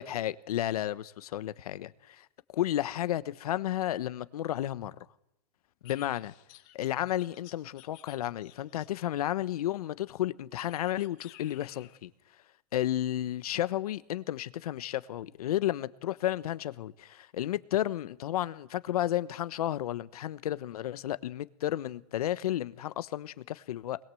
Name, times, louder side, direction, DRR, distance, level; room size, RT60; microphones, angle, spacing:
voice 1, 0.0-2.2 2.5-5.0 5.8-6.3 6.7-12.1 12.7-24.0, left 13 dB, 70° left, 1.1 m, -32 dB
sound 1, 5.8-9.1 10.6-12.0, left 15 dB, 35° left, 1.9 m, -55 dB
24.0 x 21.0 x 7.7 m
hypercardioid pair, 155°, 20 cm